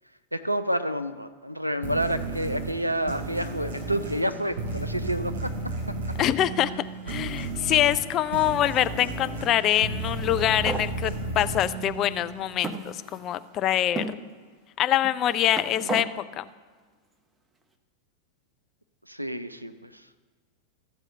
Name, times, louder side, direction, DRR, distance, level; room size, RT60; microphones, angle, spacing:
voice 1, 0.3-5.5 19.1-19.9, right 1 dB, 90° right, 10 dB, 0.4 m, -29 dB
sound 1, 1.8-13.0, right 2 dB, 60° right, 3.2 m, -34 dB
voice 2, 6.2-6.7 7.1-14.2 14.8-16.5, left 12 dB, 35° left, 13 dB, 0.4 m, -25 dB
sound 2, 10.0-10.9 11.7-11.8 12.6-13.5 14.0-14.2 15.0-16.1, right 3 dB, 15° right, 0.8 m, -34 dB
14.0 x 4.8 x 6.5 m, 1.5 s
figure-of-eight pair, 90°, 0 cm